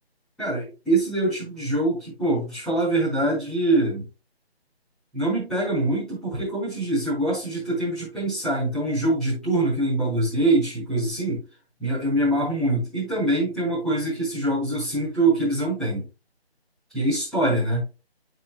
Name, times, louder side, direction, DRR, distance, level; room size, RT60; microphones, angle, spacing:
voice 1, 0.4-4.1 5.1-11.4 11.8-16.1 16.9-17.9, right 2 dB, ahead, -12 dB, 4.8 m, -24 dB
10.5 x 7.7 x 2.2 m, 0.30 s
figure-of-eight pair, 160°, 32 cm